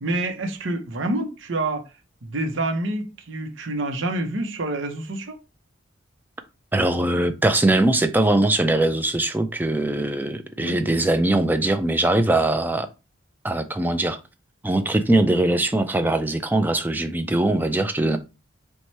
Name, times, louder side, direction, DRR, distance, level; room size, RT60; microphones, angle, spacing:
voice 1, 0.0-1.9 2.2-5.4 10.6-10.8, right 2 dB, 75° right, 0.8 m, -27 dB
voice 2, 6.7-12.9 13.4-14.2 14.6-18.2, right 2 dB, 10° right, 0.3 m, -21 dB
4.7 x 2.2 x 4.1 m
head